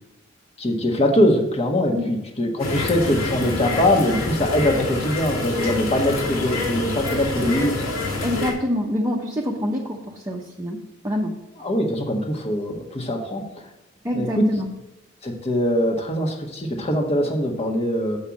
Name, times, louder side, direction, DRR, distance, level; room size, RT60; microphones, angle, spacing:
voice 1, 0.6-7.9 11.6-13.5 14.1-14.5 15.2-18.2, left 1 dB, 30° left, 2 dB, 1.3 m, -22 dB
sound 1, 2.6-8.5, left 2 dB, 85° left, 2.7 m, -27 dB
voice 2, 8.2-11.3 14.0-14.7, left 1 dB, 15° right, -2 dB, 0.9 m, -26 dB
7.2 x 5.6 x 6.3 m, 0.97 s
head